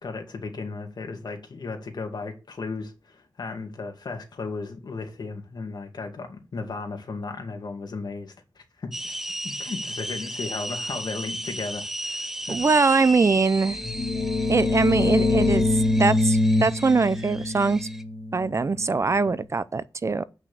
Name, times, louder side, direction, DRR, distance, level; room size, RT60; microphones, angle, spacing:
voice 1, 0.0-9.2 9.4-12.7 15.0-15.1, left 4 dB, 70° left, 2.4 m, -35 dB
sound 1, 8.9-18.0, right 1 dB, 5° right, 0.8 m, -35 dB
voice 2, 12.5-13.8 14.5-15.7 16.0-17.9 18.3-20.2, right 4 dB, 40° right, 0.5 m, -22 dB
sound 2, 13.7-19.2, left 2 dB, 35° left, 2.5 m, -24 dB
9.2 x 5.9 x 6.9 m
wide cardioid pair, 115°, 7 cm